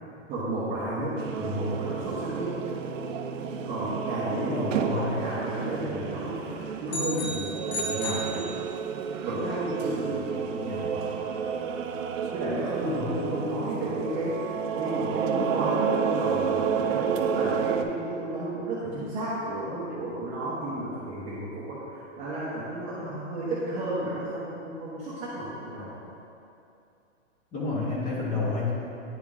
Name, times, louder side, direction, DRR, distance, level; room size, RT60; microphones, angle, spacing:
voice 1, 0.3-2.6 3.6-8.5 9.2-11.1 12.3-14.5 14.7-25.9, right 1 dB, 20° right, -9 dB, 0.8 m, -32 dB
sound 1, 1.2-17.8, right 6 dB, 80° right, 0.6 m, -31 dB
voice 2, 4.3-5.1 12.8-13.5 27.5-28.7, left 3 dB, 20° left, -6 dB, 1.1 m, -30 dB
sound 2, 6.9-9.1, left 1 dB, 55° left, 0.8 m, -34 dB
9.7 x 3.4 x 3.5 m, 2.7 s
hypercardioid pair, 155°, 39 cm